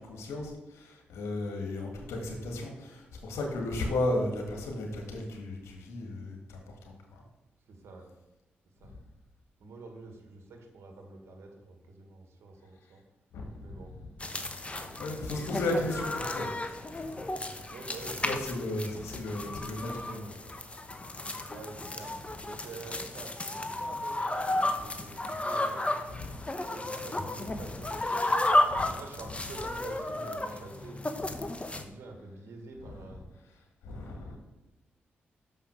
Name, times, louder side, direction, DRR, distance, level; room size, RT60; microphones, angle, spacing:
voice 1, 0.1-7.2 13.3-13.8 14.6-17.1 17.6-17.7 18.2-20.5 26.1-26.4 28.7-28.9 32.9-33.0 33.8-34.4, left 2 dB, 80° left, 1 dB, 1.9 m, -35 dB
voice 2, 7.7-8.1 8.8-9.0 9.6-13.0 13.6-13.9 14.8-15.2 17.7-18.4 21.5-25.9 26.4-28.3 28.9-31.0 31.7-33.2, right 3 dB, 70° right, 3 dB, 1.7 m, -47 dB
sound 1, 14.2-31.8, left 1 dB, 25° left, 1.0 m, -33 dB
6.6 x 5.6 x 6.5 m, 1.0 s
supercardioid pair, 45°, 5 cm